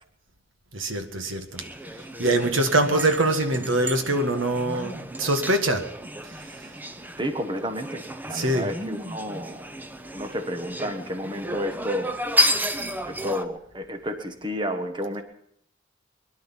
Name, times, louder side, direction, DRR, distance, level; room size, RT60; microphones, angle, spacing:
voice 1, 0.7-1.6 1.9-5.8 6.2-6.8 8.3-8.7, right 1 dB, 90° right, 7 dB, 1.8 m, -24 dB
sound 1, 1.5-13.5, equal, 10° right, 0.8 m, -32 dB
voice 2, 7.2-9.7 10.1-12.2 13.1-15.2, equal, 25° right, 7 dB, 1.3 m, -31 dB
22.0 x 11.5 x 5.8 m, 0.69 s
head